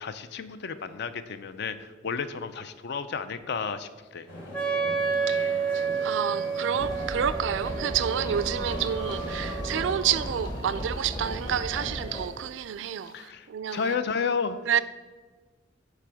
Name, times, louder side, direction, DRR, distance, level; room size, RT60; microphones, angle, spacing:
voice 1, 0.0-4.3 13.1-14.8, left 5 dB, 60° left, 0.4 m, -32 dB
sound 1, 4.3-10.0, left 1 dB, 90° left, 2.5 m, -41 dB
Wind instrument woodwind instrument, 4.5-10.2, right 5 dB, 5° left, 0.5 m, -30 dB
voice 2, 5.0-14.0 14.7-14.8, right 9 dB, 70° right, 0.3 m, -29 dB
sound 2, 6.8-12.3, equal, 25° left, 0.9 m, -35 dB
8.1 x 3.4 x 6.1 m
head